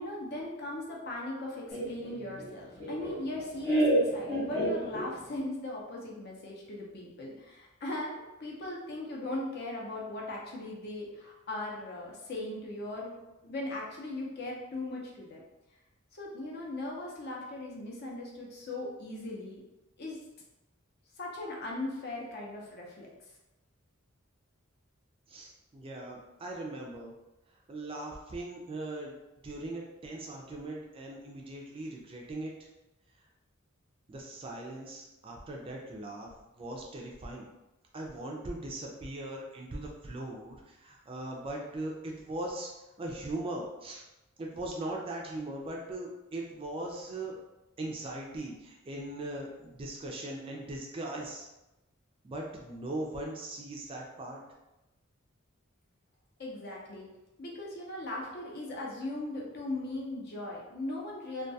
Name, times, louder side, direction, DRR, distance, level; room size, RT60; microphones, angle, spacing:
voice 1, 0.0-13.2 13.4-15.4 16.1-19.6 20.0-20.2 21.2-23.1 56.4-57.1 57.4-61.5, left 2 dB, 50° left, -2 dB, 0.6 m, -38 dB
Laughter, 1.7-5.4, right 1 dB, 10° left, 0.9 m, -30 dB
voice 2, 25.3-27.1 27.7-29.2 29.4-32.5 34.1-37.5 37.9-42.7 43.0-44.0 44.4-47.3 47.8-51.5 52.2-54.4, right 1 dB, 25° right, -1 dB, 0.3 m, -39 dB
2.2 x 2.2 x 2.6 m, 0.99 s
head